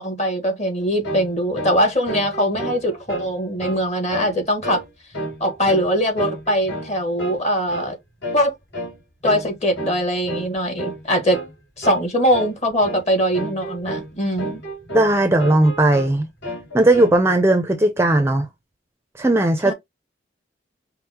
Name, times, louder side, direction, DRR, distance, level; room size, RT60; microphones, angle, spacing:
voice 1, 0.0-4.8 5.4-7.9 8.3-8.5 9.2-11.4 11.8-14.6 19.6-19.7, equal, 40° left, 1.4 m, -21 dB
sound 1, 1.0-1.3 1.6-1.8 2.1-3.3 3.6-3.8 4.1-4.4 4.6-4.9 5.1-5.9 6.2-6.9 7.2-7.4 7.7-7.9 8.2-8.4 8.7-9.0 9.2-9.5 9.8-10.0 10.3-10.5 10.8-11.0 11.3-11.5 11.8-12.1 12.3-12.6 12.8-13.0 13.3-14.1 14.4-15.1 15.4-16.1 16.4-17.2, right 1 dB, 65° left, 2.1 m, -30 dB
voice 2, 14.9-16.3 16.7-18.5 19.2-19.7, right 1 dB, 15° right, 0.4 m, -17 dB
5.4 x 2.0 x 2.8 m
head